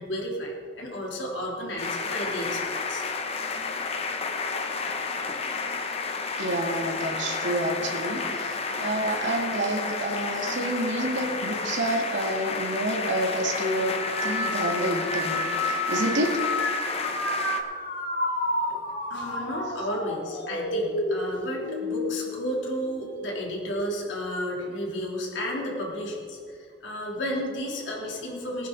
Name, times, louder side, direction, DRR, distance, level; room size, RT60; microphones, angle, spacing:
voice 1, 0.0-3.0 19.1-28.7, equal, 80° left, -2 dB, 3.2 m, -32 dB
sound 1, 1.8-17.6, left 4 dB, 35° left, 0.9 m, -31 dB
voice 2, 6.4-16.4 18.7-18.8, right 1 dB, 80° right, 1 dB, 2.0 m, -29 dB
sound 2, 13.7-23.3 23.8-24.4 25.3-25.7, left 1 dB, 50° left, 2.8 m, -31 dB
19.5 x 10.0 x 4.0 m, 2.2 s
head